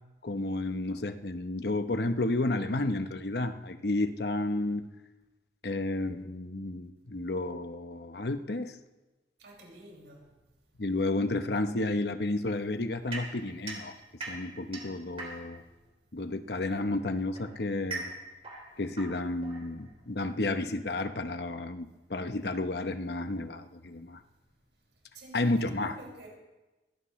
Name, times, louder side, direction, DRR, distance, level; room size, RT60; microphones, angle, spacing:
voice 1, 0.2-4.8 5.6-8.8 10.8-13.9 14.3-15.6 16.1-18.1 18.8-24.2 25.3-26.0, left 2 dB, 65° left, 0.9 m, -31 dB
voice 2, 9.4-10.3 25.1-26.3, right 2 dB, 75° right, 5.6 m, -49 dB
sound 1, 13.1-15.7 16.7-20.1, right 3 dB, 35° right, 3.4 m, -42 dB
21.5 x 17.0 x 3.2 m
head